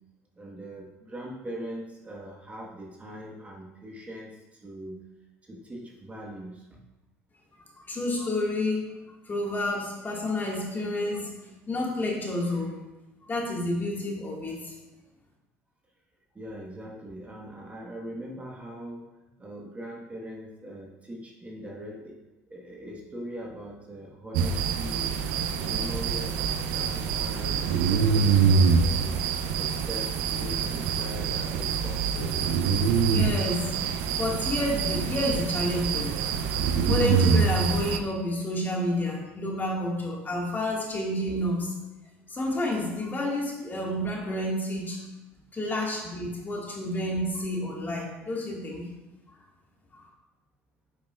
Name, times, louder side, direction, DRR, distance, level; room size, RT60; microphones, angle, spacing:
voice 1, 0.4-5.0 5.4-6.8 16.3-19.1 19.4-22.2 22.5-25.1 25.5-29.2 29.5-32.4, equal, 20° right, -2 dB, 1.4 m, -41 dB
voice 2, 7.9-8.9 9.3-11.3 11.7-12.7 13.3-14.7 33.1-33.7 34.2-36.1 36.9-41.7 42.3-45.0 45.5-48.8 50.0-50.1, left 1 dB, 25° left, -2 dB, 1.9 m, -29 dB
sound 1, 24.3-38.0, right 6 dB, 70° right, 0.5 m, -25 dB
8.6 x 5.5 x 2.4 m, 1.0 s
hypercardioid pair, 70°, 7 cm